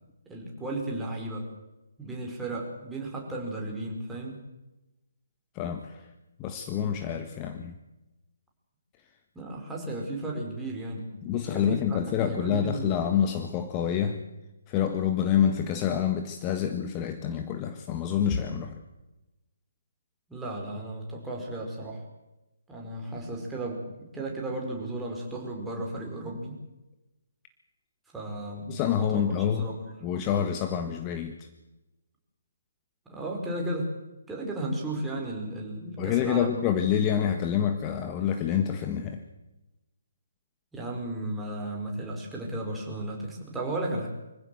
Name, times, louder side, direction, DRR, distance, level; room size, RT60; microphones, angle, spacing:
voice 1, 0.3-1.5 2.0-4.4 9.4-11.1 11.5-13.0 20.3-22.0 22.7-23.8 24.1-26.5 28.1-29.2 29.5-30.1 33.1-33.9 34.3-36.5 40.7-44.1, right 1 dB, 5° right, -1 dB, 5.3 m, -34 dB
voice 2, 5.5-6.1 6.4-7.7 11.2-14.2 14.7-18.8 28.7-29.7 30.0-31.5 36.0-39.2, left 8 dB, 25° left, 7 dB, 1.5 m, -27 dB
25.5 x 15.5 x 8.0 m, 1.0 s
figure-of-eight pair, 140°, 0 cm